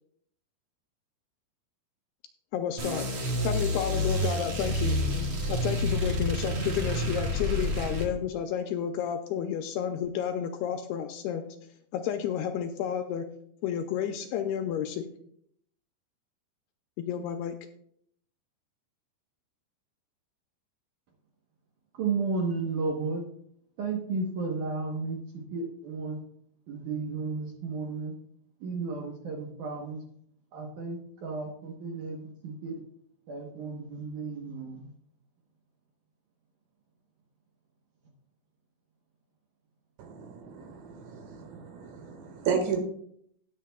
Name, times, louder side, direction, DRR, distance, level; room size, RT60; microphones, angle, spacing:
voice 1, 2.5-3.0 3.4-5.0 5.5-11.5 11.9-13.2 13.6-15.1 17.0-17.6, left 9 dB, 85° left, 6 dB, 2.4 m, -31 dB
sound 1, 2.8-8.1, left 1 dB, 55° right, 1.4 m, -29 dB
voice 2, 21.9-23.2 23.8-26.2 26.7-28.1 28.6-30.0 30.5-32.8 33.3-34.9, right 4 dB, 75° right, 0 dB, 1.9 m, -33 dB
voice 3, 40.0-42.8, right 6 dB, 90° right, 4 dB, 3.9 m, -33 dB
18.0 x 7.3 x 2.2 m, 0.68 s
omnidirectional pair, 5.0 m